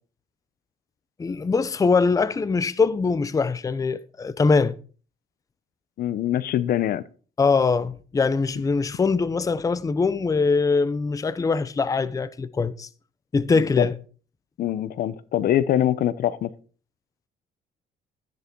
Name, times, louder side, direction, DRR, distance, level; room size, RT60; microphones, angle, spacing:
voice 1, 1.2-4.7 7.4-12.9 13.3-13.9, left 4 dB, 20° left, 0.7 m, -22 dB
voice 2, 6.0-7.0 13.5-13.9 14.6-16.5, left 11 dB, 60° left, 0.9 m, -24 dB
13.5 x 9.9 x 4.6 m
cardioid pair, 110°, 17 cm